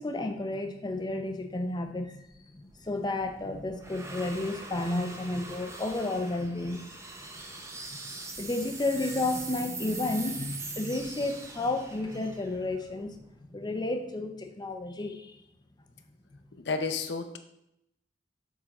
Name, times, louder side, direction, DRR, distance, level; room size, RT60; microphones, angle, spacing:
voice 1, 0.0-6.8 8.4-13.2 13.5-15.3, left 2 dB, 25° left, 6 dB, 0.6 m, -32 dB
sound 1, 2.3-13.6, right 3 dB, 15° right, 0.6 m, -43 dB
voice 2, 16.5-17.4, left 4 dB, 70° left, 7 dB, 0.7 m, -31 dB
7.2 x 3.8 x 4.2 m, 0.81 s
head